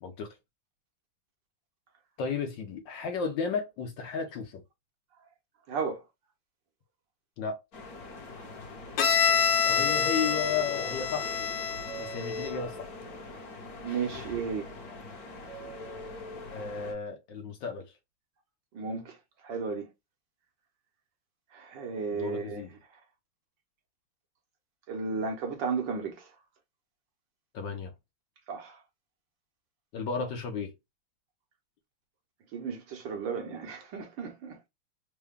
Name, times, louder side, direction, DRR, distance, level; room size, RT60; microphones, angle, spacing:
voice 1, 0.0-0.4 2.2-4.6 7.4-7.6 9.6-11.4 12.0-12.9 16.5-17.9 22.1-22.7 27.5-27.9 29.9-30.7, left 5 dB, 65° left, 1.3 m, -34 dB
voice 2, 5.7-6.0 13.8-14.7 18.7-19.2 19.4-19.9 21.5-22.6 24.9-26.3 28.5-28.8 32.5-34.6, right 5 dB, 65° right, 1.3 m, -34 dB
sound 1, 7.7-16.9, left 2 dB, 50° left, 1.4 m, -42 dB
Bowed string instrument, 9.0-12.7, left 6 dB, 85° left, 1.5 m, -27 dB
3.8 x 2.2 x 3.5 m
omnidirectional pair, 2.4 m